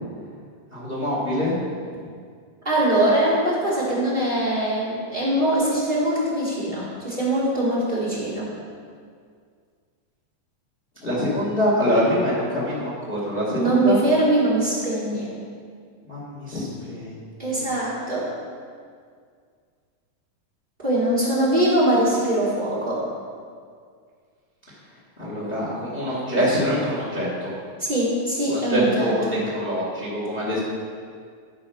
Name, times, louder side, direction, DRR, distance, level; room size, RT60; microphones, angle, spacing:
voice 1, 0.7-1.5 11.0-14.0 16.0-17.2 17.4-17.7 25.2-27.5 28.5-29.2 29.5-30.6, equal, 80° left, -6 dB, 0.5 m, -24 dB
voice 2, 2.6-8.5 13.5-15.3 17.4-18.3 20.8-23.0 27.8-29.4, right 1 dB, 65° right, -9 dB, 0.5 m, -22 dB
12.5 x 4.5 x 5.4 m, 2.1 s
omnidirectional pair, 4.3 m